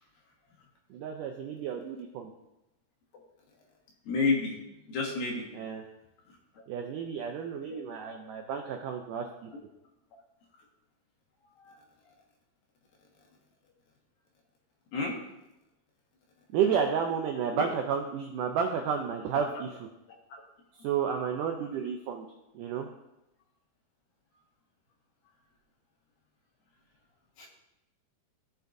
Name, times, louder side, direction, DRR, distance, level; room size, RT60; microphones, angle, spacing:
voice 1, 0.9-2.3 5.5-5.8 6.7-9.5 16.5-19.9 20.8-22.3 22.5-22.9, right 7 dB, 85° right, 3 dB, 1.9 m, -31 dB
voice 2, 4.1-4.5 4.9-5.5 7.7-7.8 11.6-11.7 14.9-15.2 17.5-17.6 19.4-19.5 27.4-27.5, left 4 dB, 65° left, -1 dB, 3.2 m, -30 dB
17.5 x 6.5 x 2.6 m, 0.91 s
omnidirectional pair, 4.5 m